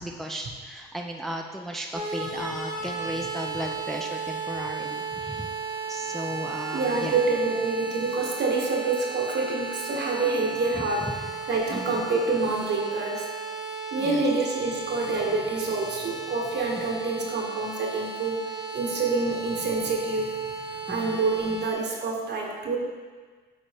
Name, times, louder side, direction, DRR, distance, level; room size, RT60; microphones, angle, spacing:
voice 1, 0.0-5.5 5.9-7.2 11.7-12.0 14.0-14.2 20.9-21.2, equal, ahead, 1 dB, 0.5 m, -35 dB
sound 1, 1.9-21.7, right 4 dB, 20° right, 1.0 m, -35 dB
voice 2, 6.7-13.2 13.9-18.4 18.7-20.3 20.7-22.8, right 3 dB, 60° right, 0 dB, 1.2 m, -27 dB
8.3 x 3.7 x 3.5 m, 1.5 s
cardioid pair, 90°, 20 cm